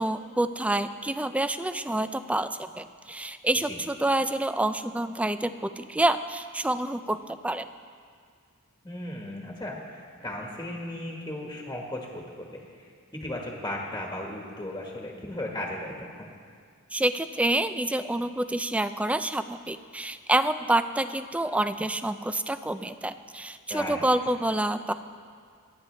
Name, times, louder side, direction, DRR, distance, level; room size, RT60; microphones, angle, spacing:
voice 1, 0.0-7.7 16.9-24.9, right 1 dB, 5° right, 11 dB, 0.3 m, -27 dB
voice 2, 8.8-12.9 13.2-16.3 23.7-24.1, left 1 dB, 15° left, -2 dB, 1.5 m, -36 dB
27.0 x 9.8 x 3.3 m, 2.1 s
head